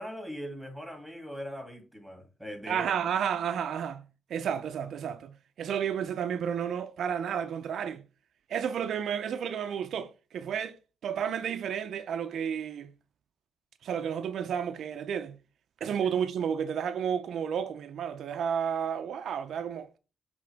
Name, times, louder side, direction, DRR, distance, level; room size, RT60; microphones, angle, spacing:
voice 1, 0.0-2.9 16.0-16.1, equal, ahead, 2.8 m, -40 dB
voice 2, 2.7-8.0 8.5-10.8 11.0-12.9 13.8-15.4 15.8-20.0, right 8 dB, 70° right, 0.5 m, -32 dB
7.7 x 3.7 x 3.5 m
cardioid pair, 75°, 0 cm